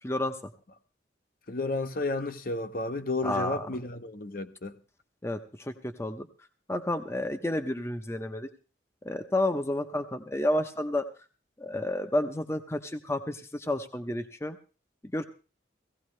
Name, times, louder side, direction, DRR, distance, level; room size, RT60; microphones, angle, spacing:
voice 1, 0.0-0.5 3.2-3.7 5.2-6.3 6.7-8.5 9.0-11.0 11.6-14.6 15.1-15.2, left 1 dB, 15° left, 0.7 m, -30 dB
voice 2, 1.5-4.8, left 2 dB, 50° left, 0.8 m, -32 dB
17.5 x 15.5 x 3.2 m
head